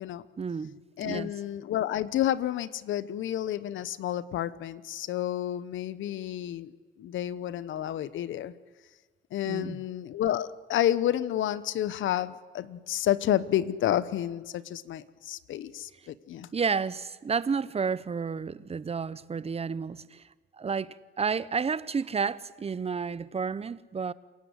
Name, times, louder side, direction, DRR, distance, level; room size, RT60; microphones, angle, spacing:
voice 1, 0.4-1.3 9.5-9.8 16.5-20.2 20.5-24.1, right 5 dB, 30° right, 1.0 m, -31 dB
voice 2, 1.0-8.5 9.3-16.5, left 12 dB, 80° left, 1.2 m, -30 dB
28.5 x 17.5 x 8.2 m
cardioid pair, 90°, 20 cm